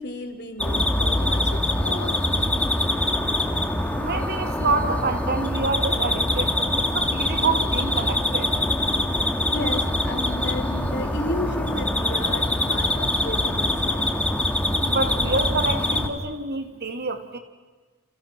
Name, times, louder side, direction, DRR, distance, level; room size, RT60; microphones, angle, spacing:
voice 1, 0.0-2.5 9.2-14.1, left 2 dB, 55° left, 7 dB, 3.2 m, -33 dB
sound 1, 0.6-16.1, left 1 dB, 5° left, 2.3 m, -24 dB
voice 2, 4.0-8.5 14.8-17.4, right 3 dB, 50° right, 7 dB, 2.2 m, -27 dB
30.0 x 28.5 x 6.0 m, 1.4 s
head